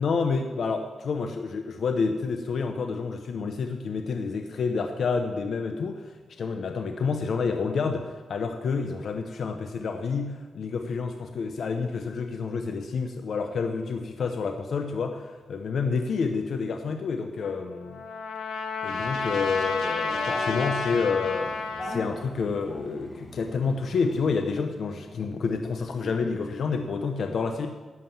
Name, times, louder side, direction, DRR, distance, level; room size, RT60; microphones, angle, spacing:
voice 1, 0.0-18.0 18.8-21.5 21.8-27.7, left 5 dB, 70° left, 5 dB, 0.8 m, -29 dB
Trumpet, 17.4-22.1, left 4 dB, 85° left, 1.5 m, -31 dB
sound 1, 18.9-24.6, left 2 dB, 30° left, 1.5 m, -41 dB
11.5 x 7.5 x 7.2 m, 1.3 s
cardioid pair, 85°, 0 cm